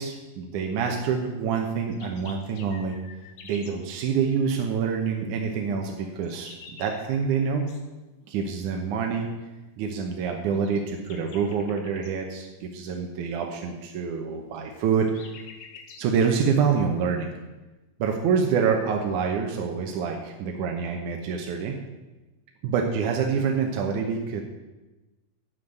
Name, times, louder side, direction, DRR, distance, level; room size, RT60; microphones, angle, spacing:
voice 1, 0.0-3.0 3.4-7.7 8.3-9.3 9.8-15.3 16.0-17.3 18.0-21.8 22.6-24.4, right 6 dB, 70° right, 2 dB, 2.2 m, -26 dB
sound 1, 1.8-3.8 5.8-7.8 10.5-12.2 14.5-16.1, left 5 dB, 65° left, 1.4 m, -48 dB
11.0 x 5.8 x 8.0 m, 1.1 s
omnidirectional pair, 4.1 m